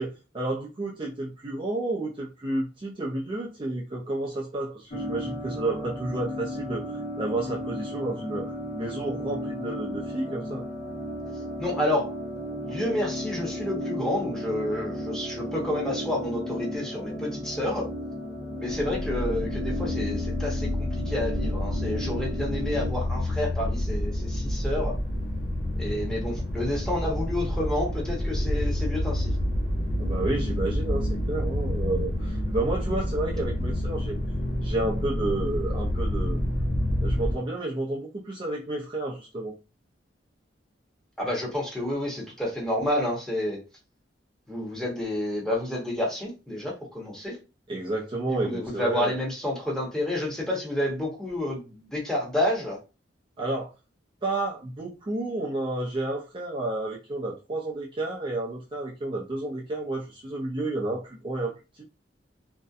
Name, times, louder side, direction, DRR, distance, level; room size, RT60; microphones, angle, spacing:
voice 1, 0.0-10.7 30.0-34.2 34.6-36.4 37.0-39.5 47.7-49.1 53.4-53.7 54.2-61.8, right 2 dB, 30° right, 0.4 m, -31 dB
sound 1, 4.9-22.9, left 1 dB, 40° left, 0.6 m, -34 dB
voice 2, 11.6-12.1 12.6-17.9 18.6-25.0 25.8-29.3 41.2-43.6 44.5-47.4 48.3-52.8, left 1 dB, 5° left, 0.8 m, -29 dB
sound 2, 18.7-37.4, left 1 dB, 65° left, 0.9 m, -28 dB
2.6 x 2.1 x 2.3 m
head